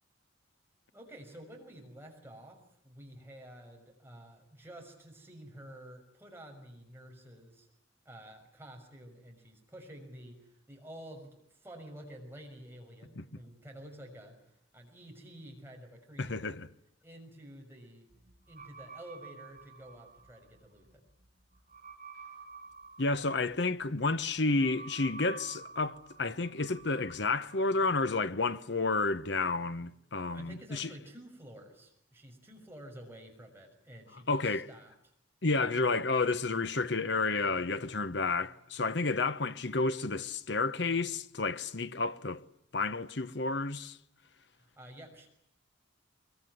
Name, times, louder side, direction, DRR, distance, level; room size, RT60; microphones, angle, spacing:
voice 1, 0.9-7.7 8.0-14.4 14.7-16.5 17.0-18.0 18.5-21.0 30.3-34.9 44.5-45.3, right 1 dB, 10° right, 6.2 m, -50 dB
voice 2, 16.2-16.7 23.0-30.9 34.3-34.7 35.4-42.4 42.7-44.0, left 3 dB, 60° left, 1.0 m, -31 dB
sound 1, 18.1-27.6, right 4 dB, 40° right, 3.9 m, -50 dB
24.0 x 23.0 x 9.5 m
head